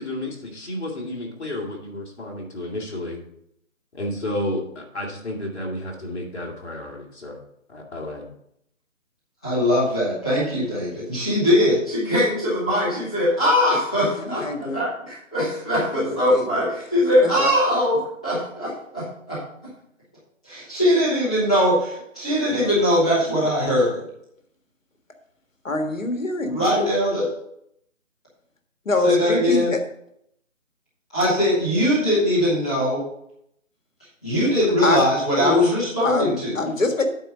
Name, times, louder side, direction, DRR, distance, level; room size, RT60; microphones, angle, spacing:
voice 1, 0.0-3.2 3.9-7.4 7.7-8.3, left 1 dB, 55° left, 0 dB, 2.4 m, -31 dB
voice 2, 9.4-19.4 20.4-24.1 26.4-27.3 29.0-29.7 31.1-33.0 34.2-36.6, left 1 dB, 5° left, -11 dB, 0.7 m, -21 dB
voice 3, 14.2-14.8 15.9-16.7 17.2-17.5 22.5-22.7 25.6-26.6 28.8-29.8 34.8-35.0 35.4-35.6 36.0-36.3 36.5-37.0, left 2 dB, 75° left, 5 dB, 1.7 m, -24 dB
8.9 x 4.1 x 6.6 m, 0.73 s
figure-of-eight pair, 155°, 39 cm